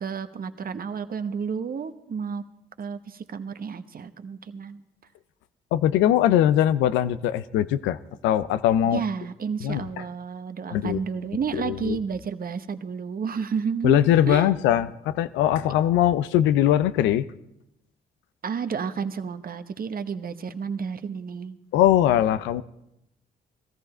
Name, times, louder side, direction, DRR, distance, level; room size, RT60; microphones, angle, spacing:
voice 1, 0.0-2.4 2.8-4.8 8.8-14.5 18.4-21.6, right 6 dB, 50° right, 10 dB, 1.0 m, -31 dB
voice 2, 5.7-9.0 9.6-10.0 10.7-11.0 11.5-12.0 13.8-17.3 21.7-22.6, left 11 dB, 85° left, 14 dB, 0.5 m, -21 dB
18.5 x 14.0 x 4.3 m, 0.83 s
supercardioid pair, 50°, 19 cm